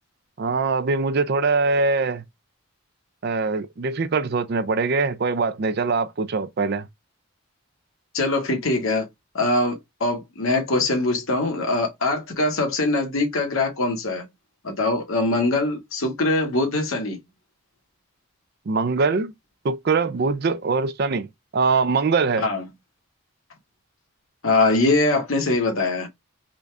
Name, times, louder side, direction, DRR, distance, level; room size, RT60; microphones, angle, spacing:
voice 1, 0.4-2.2 3.2-6.9 18.7-19.3 19.6-21.3 21.5-22.5, right 4 dB, 50° right, 0.4 m, -22 dB
voice 2, 8.1-9.1 9.3-14.2 14.6-17.2 22.4-22.6 24.4-26.1, left 2 dB, 70° left, 1.3 m, -22 dB
3.9 x 2.4 x 3.2 m
head